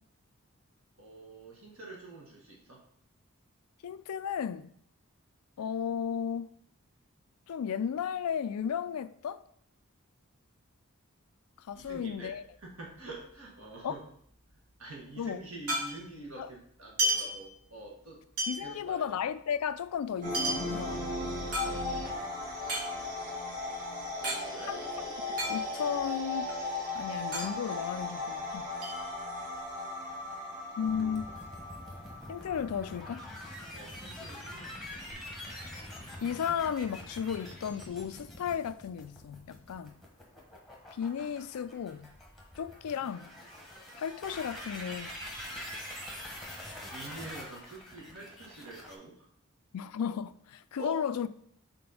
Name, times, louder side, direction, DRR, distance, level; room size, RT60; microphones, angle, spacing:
voice 1, 1.0-2.8 11.7-12.3 12.6-14.1 14.8-18.2 18.6-19.1 21.7-22.6 24.4-24.8 30.0-31.0 33.7-35.2 46.8-49.3 50.8-51.0, right 2 dB, 65° right, 1.7 m, -47 dB
voice 2, 3.8-4.7 5.6-6.5 7.5-9.4 11.6-12.4 13.8-13.9 15.2-15.4 16.4-16.5 18.5-21.1 24.6-26.6 26.9-28.7 30.8-31.4 32.3-33.2 36.2-39.9 40.9-42.1 42.6-43.3 43.9-45.2 49.7-51.3, left 7 dB, 85° left, 0.4 m, -34 dB
sound 1, 11.7-13.4 13.6-13.7 14.0-16.3 16.8-18.0 18.4-22.2 22.6-24.4 24.7-24.8 25.1-26.0 26.4-28.4 28.8-29.6, right 1 dB, 85° right, 2.0 m, -34 dB
sound 2, 20.2-33.6, left 2 dB, 35° right, 1.3 m, -37 dB
sound 3, 30.8-48.9, left 1 dB, ahead, 1.0 m, -45 dB
4.3 x 4.1 x 5.5 m
head